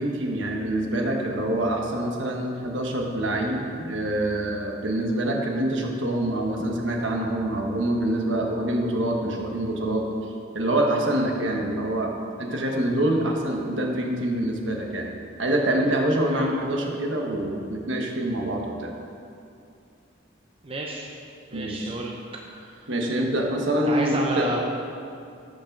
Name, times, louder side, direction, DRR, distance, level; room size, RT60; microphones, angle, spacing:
voice 1, 0.0-10.0 10.5-12.1 12.4-15.1 15.4-18.9 21.5-22.0 22.9-24.5, right 1 dB, 70° right, 1 dB, 1.3 m, -25 dB
voice 2, 20.6-21.1 21.5-22.2 22.5-22.9 23.9-24.6, right 1 dB, 30° right, -1 dB, 0.7 m, -31 dB
13.0 x 5.3 x 5.3 m, 2.5 s
head